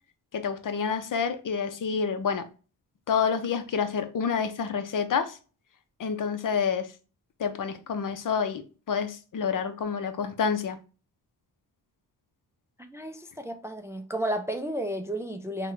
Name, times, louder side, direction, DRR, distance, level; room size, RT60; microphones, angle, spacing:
voice 1, 0.3-2.5 3.1-5.4 6.0-6.9 7.4-10.8, left 6 dB, 50° left, 0.6 m, -28 dB
voice 2, 12.8-15.7, right 1 dB, 5° right, 0.4 m, -32 dB
3.7 x 2.2 x 3.2 m
cardioid pair, 75°, 40 cm